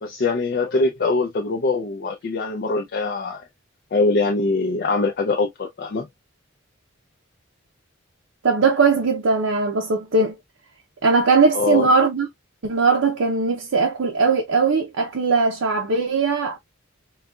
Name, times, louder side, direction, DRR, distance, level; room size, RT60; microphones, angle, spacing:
voice 1, 0.0-3.4 3.9-6.1 11.5-11.9, left 3 dB, 50° left, 0.4 m, -23 dB
voice 2, 8.4-10.3 11.0-12.3 12.6-16.6, right 4 dB, 80° right, 0.6 m, -19 dB
3.9 x 2.3 x 2.3 m
head